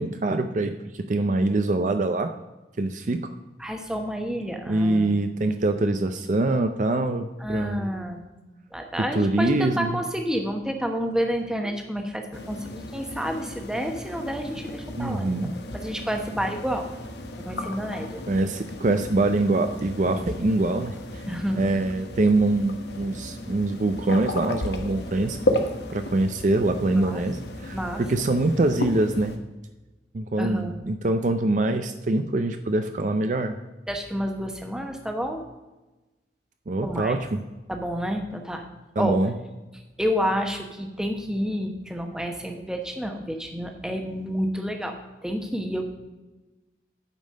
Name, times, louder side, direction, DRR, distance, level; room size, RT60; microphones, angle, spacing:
voice 1, 0.0-2.3 2.8-3.3 4.7-7.8 9.1-10.0 15.0-15.5 18.3-25.4 25.9-29.4 30.1-33.5 36.7-37.4 39.0-39.3, right 2 dB, 45° right, 7 dB, 0.5 m, -24 dB
voice 2, 3.6-5.2 7.4-8.2 8.7-15.3 15.7-16.9 17.4-18.2 21.3-21.6 27.0-27.2 27.7-28.0 30.4-30.8 33.9-35.4 36.8-37.2 37.7-38.6 39.0-39.2 40.0-45.0 45.2-45.8, equal, 5° right, 3 dB, 1.0 m, -29 dB
sound 1, 12.3-29.4, left 1 dB, 70° left, 1.1 m, -34 dB
9.1 x 5.3 x 6.4 m, 1.1 s
head